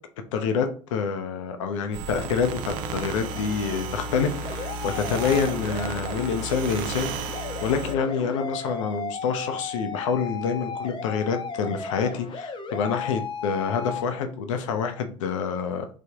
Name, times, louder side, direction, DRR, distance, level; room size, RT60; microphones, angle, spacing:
voice 1, 0.3-15.9, left 6 dB, 85° left, 6 dB, 0.5 m, -27 dB
sound 1, 1.9-8.0, right 4 dB, 65° right, 0.4 m, -33 dB
sound 2, 2.6-14.0, left 5 dB, 30° left, 0.6 m, -36 dB
3.3 x 2.0 x 3.4 m, 0.40 s
hypercardioid pair, 70°, 16 cm